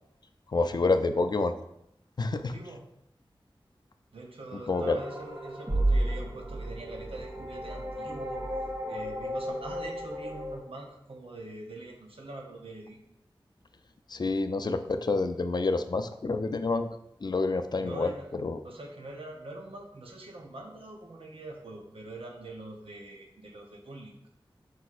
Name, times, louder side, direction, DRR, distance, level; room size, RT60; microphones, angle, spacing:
voice 1, 0.5-1.5 2.2-2.5 4.7-5.0 14.1-16.9 17.2-18.1 18.4-18.6, left 3 dB, 50° left, 9 dB, 0.3 m, -28 dB
voice 2, 2.4-2.8 4.1-13.0 17.8-18.4 18.6-24.2, right 2 dB, 85° right, 1 dB, 0.7 m, -43 dB
sound 1, 4.7-10.6, right 1 dB, 25° right, 0.7 m, -32 dB
4.6 x 4.1 x 2.5 m, 0.79 s
wide cardioid pair, 65°, 9 cm